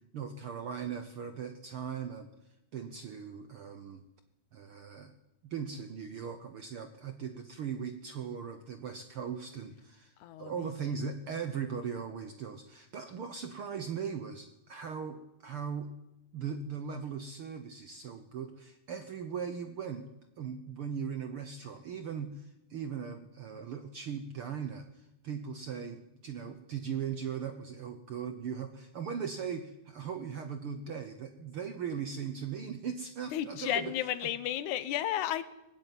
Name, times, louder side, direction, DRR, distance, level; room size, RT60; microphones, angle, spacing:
voice 1, 0.1-2.3 2.7-4.0 4.5-5.1 5.4-10.1 10.4-15.9 16.3-20.1 20.4-24.9 25.2-33.9, right 7 dB, 60° right, 8 dB, 1.5 m, -39 dB
voice 2, 10.2-11.0 33.3-35.4, left 12 dB, 70° left, 14 dB, 2.3 m, -33 dB
19.5 x 15.0 x 9.2 m, 0.92 s
omnidirectional pair, 3.7 m